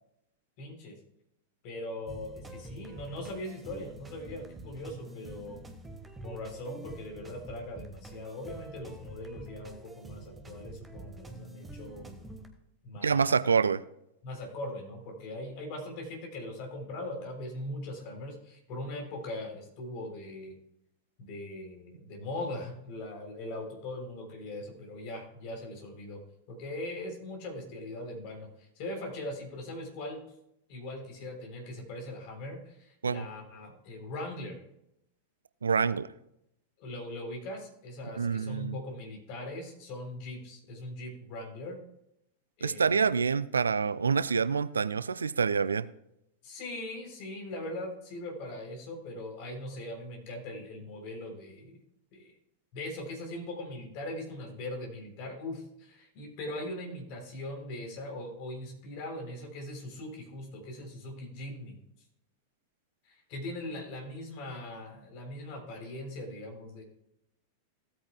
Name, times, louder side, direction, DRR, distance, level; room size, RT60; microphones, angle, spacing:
voice 1, 0.6-0.9 1.6-5.6 6.2-12.1 12.8-13.3 14.2-20.5 21.2-26.2 26.5-30.2 30.7-34.6 36.8-41.8 42.6-43.0 46.4-51.8 52.1-52.3 52.7-61.8 63.0-66.8, left 1 dB, 45° left, 1 dB, 3.5 m, -40 dB
sound 1, 2.1-12.5, right 2 dB, 15° right, 1.5 m, -47 dB
voice 2, 13.0-13.8 33.0-33.3 35.6-36.1 38.2-38.8 42.6-45.9, right 5 dB, 75° right, 16 dB, 0.4 m, -27 dB
16.5 x 8.5 x 2.3 m, 0.80 s
figure-of-eight pair, 90°, 0 cm